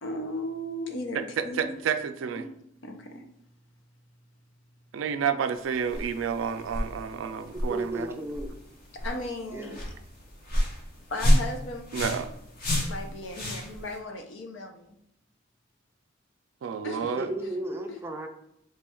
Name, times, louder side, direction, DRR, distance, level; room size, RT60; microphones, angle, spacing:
voice 1, 0.0-1.7 2.4-2.5 2.8-3.2 9.0-9.8 11.1-11.8 12.9-15.0 16.8-17.2 17.9-18.0, left 1 dB, 70° left, 4 dB, 0.6 m, -36 dB
voice 2, 1.4-2.4 4.9-8.1 11.9-12.3 16.6-17.3, right 7 dB, 90° right, 9 dB, 0.3 m, -30 dB
sound 1, 5.5-14.0, equal, 50° left, 1.0 m, -30 dB
voice 3, 7.5-8.5 9.5-9.8 17.2-18.3, right 1 dB, 15° right, 2 dB, 0.4 m, -34 dB
3.1 x 2.3 x 4.3 m, 0.76 s
head